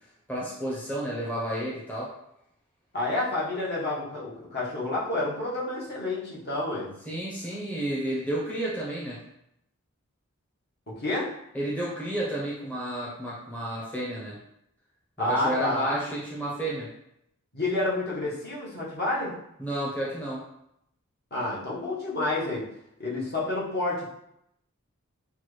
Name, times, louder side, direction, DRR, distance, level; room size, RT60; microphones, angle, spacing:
voice 1, 0.3-2.1 7.1-9.2 11.5-14.4 15.3-16.9 19.6-20.4, right 1 dB, 10° left, -6 dB, 0.7 m, -31 dB
voice 2, 2.9-6.9 10.9-11.3 15.2-16.0 17.5-19.3 21.3-22.7 23.0-24.1, left 2 dB, 50° left, -6 dB, 1.2 m, -29 dB
5.8 x 2.3 x 3.2 m, 0.78 s
head